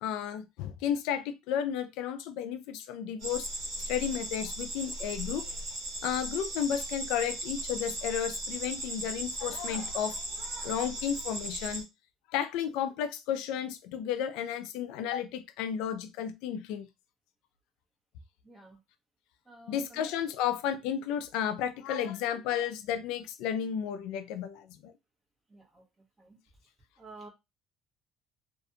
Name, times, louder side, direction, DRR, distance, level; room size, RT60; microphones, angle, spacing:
voice 1, 0.0-3.5 3.9-5.5 6.0-10.2 10.6-11.9 12.3-16.9 19.7-24.9, left 9 dB, 80° left, 0.3 m, -33 dB
sound 1, 3.2-11.8, right 1 dB, 60° right, 1.3 m, -37 dB
voice 2, 18.4-18.8 19.5-20.1 25.5-25.8 26.2-26.4 27.0-27.3, right 2 dB, 15° right, 0.9 m, -50 dB
2.5 x 2.2 x 2.6 m
cardioid pair, 135°, 0 cm